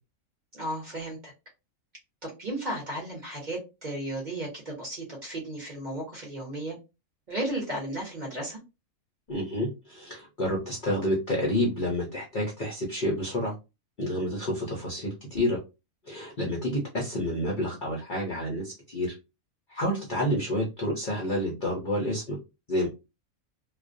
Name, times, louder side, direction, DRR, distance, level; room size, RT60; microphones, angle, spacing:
voice 1, 0.5-1.3 2.2-6.8 7.3-8.6, right 1 dB, 40° right, -1 dB, 0.7 m, -34 dB
voice 2, 9.3-13.5 14.0-15.6 16.1-19.1 19.7-22.4 22.7-22.9, left 1 dB, 55° left, -3 dB, 0.6 m, -29 dB
2.4 x 2.0 x 2.5 m, 0.26 s
omnidirectional pair, 1.5 m